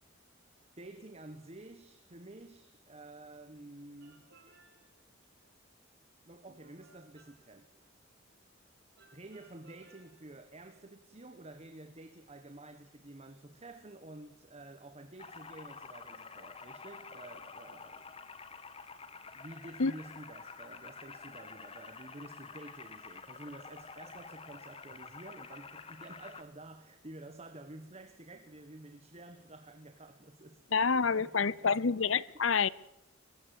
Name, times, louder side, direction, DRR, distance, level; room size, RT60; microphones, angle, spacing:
voice 1, 0.8-4.3 6.2-7.7 9.1-18.1 19.3-31.8 32.1-32.2, right 2 dB, 30° right, 1.4 m, -50 dB
sound 1, 4.0-5.1 6.5-7.9 9.0-10.4, right 2 dB, 55° right, 5.3 m, -63 dB
sound 2, 15.2-26.4, left 4 dB, 30° left, 1.4 m, -49 dB
voice 2, 30.7-32.7, left 5 dB, 70° left, 0.8 m, -28 dB
25.0 x 15.5 x 9.0 m
head